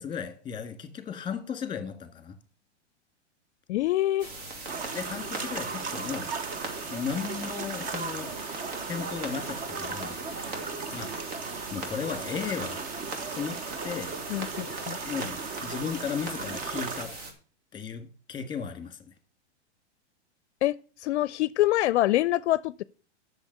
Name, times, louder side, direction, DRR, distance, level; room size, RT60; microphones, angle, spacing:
voice 1, 0.0-2.4 4.9-6.3 6.9-8.4 8.9-11.2 11.7-12.8 13.3-14.2 15.1-17.2 17.7-19.1, left 7 dB, 15° left, 1.9 m, -35 dB
voice 2, 3.7-4.3 14.3-15.0 20.6-22.8, left 15 dB, 70° left, 0.5 m, -25 dB
sound 1, 4.2-17.3, right 2 dB, 55° right, 3.2 m, -40 dB
sound 2, 4.7-17.1, right 5 dB, 25° right, 0.8 m, -36 dB
8.2 x 6.8 x 6.5 m
hypercardioid pair, 130°, 35 cm